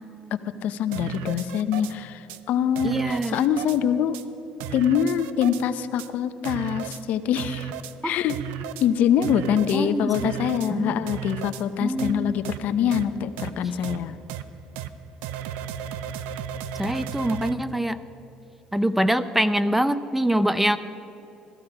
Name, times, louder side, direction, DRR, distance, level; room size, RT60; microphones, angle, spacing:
voice 1, 0.6-4.2 4.7-7.7 8.0-8.4 8.8-14.2, left 8 dB, 70° left, 11 dB, 0.7 m, -24 dB
sound 1, 0.9-1.9 2.3-2.4 2.8-3.8 4.1-4.2 4.6-5.6 6.0-6.1 6.4-7.0 7.4-7.9 8.3-8.9 9.2-9.8 10.1-10.7 11.1-11.6 12.0-12.1 12.4-12.6 12.9-13.0 13.4-13.5 13.8-14.0 14.3-14.4 14.8-14.9 15.2-17.5, right 9 dB, 85° right, 0.6 m, -34 dB
voice 2, 2.8-3.4 8.0-8.2 9.7-10.4 10.7-11.0 11.8-12.4 16.8-18.0 18.7-20.8, right 1 dB, 5° right, 13 dB, 0.6 m, -24 dB
15.5 x 14.5 x 4.9 m, 3.0 s
supercardioid pair, 90°, 3 cm